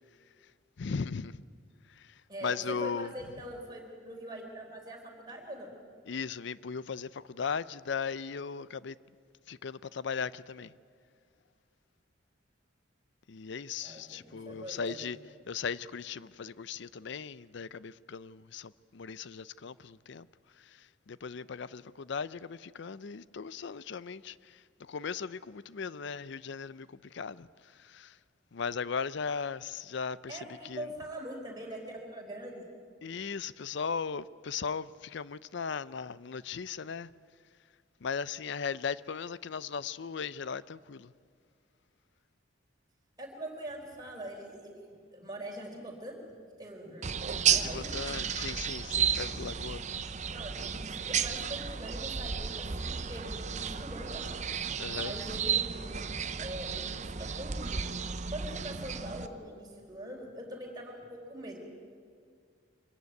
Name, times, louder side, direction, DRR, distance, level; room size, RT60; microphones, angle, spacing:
voice 1, 0.8-1.4 2.0-2.1 2.4-3.1 6.1-9.0 9.5-10.7 13.3-15.2 15.5-20.3 20.6-27.5 27.8-28.2 28.5-30.4 30.6-30.9 33.0-37.1 38.0-41.1 47.5-49.9 54.8-55.1, left 6 dB, 65° left, 0.5 m, -37 dB
voice 2, 2.3-5.7 13.8-15.0 30.3-32.7 43.2-46.2 46.6-47.9 50.3-54.3 54.9-55.9 56.4-57.8 58.3-61.6, right 1 dB, 20° right, 4.1 m, -43 dB
sound 1, 47.0-59.3, right 7 dB, 40° right, 0.7 m, -33 dB
25.0 x 15.0 x 9.4 m
head